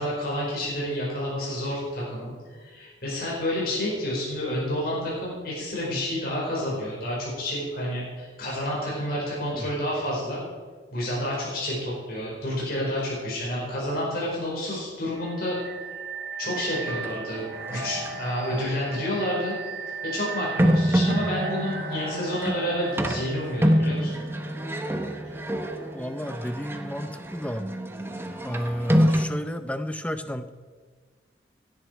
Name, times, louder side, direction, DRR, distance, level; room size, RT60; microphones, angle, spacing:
voice 1, 0.0-10.4 10.9-15.6 15.9-16.0 16.4-17.4 17.7-19.6 20.0-24.1, left 1 dB, 55° left, -5 dB, 5.1 m, -29 dB
sound 1, 15.2-26.0, right 4 dB, 50° right, 3.3 m, -37 dB
sound 2, 16.7-17.2 17.7-18.3 19.0-19.1 20.6-29.3, equal, 15° right, 0.9 m, -26 dB
voice 2, 25.9-27.7 28.4-30.5, equal, 5° left, 10 dB, 0.6 m, -32 dB
16.5 x 10.5 x 4.8 m, 1.5 s
head